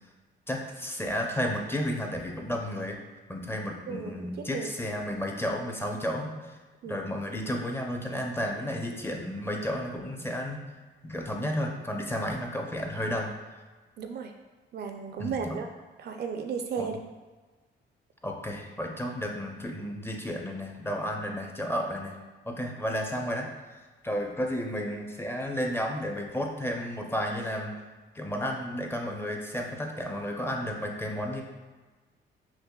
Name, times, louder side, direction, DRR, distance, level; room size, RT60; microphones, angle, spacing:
voice 1, 0.5-3.0 3.3-6.6 6.9-10.6 11.0-13.3 15.2-15.6 16.8-16.9 18.2-22.2 22.5-27.7 28.1-31.4, equal, 10° left, 1 dB, 0.5 m, -32 dB
voice 2, 3.9-4.7 6.8-7.1 14.0-14.3 14.7-15.7 16.0-17.0, right 6 dB, 55° right, 5 dB, 0.4 m, -34 dB
5.7 x 2.0 x 2.3 m, 1.3 s
cardioid pair, 90°, 20 cm